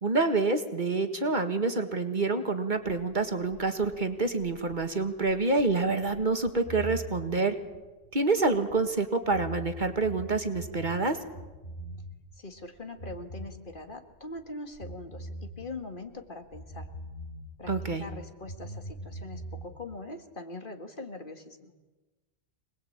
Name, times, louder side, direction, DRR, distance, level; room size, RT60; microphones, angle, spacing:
voice 1, 0.0-7.5 8.1-11.2 17.7-18.0, right 3 dB, 45° right, 7 dB, 1.9 m, -27 dB
sound 1, 2.8-9.0 9.2-12.3 12.6-14.5 14.7-18.2 18.5-19.7, right 1 dB, 65° left, 3.6 m, -42 dB
voice 2, 12.3-16.9 17.6-21.7, left 2 dB, 50° left, 6 dB, 2.2 m, -42 dB
25.5 x 20.0 x 8.9 m, 1.2 s
omnidirectional pair, 1.1 m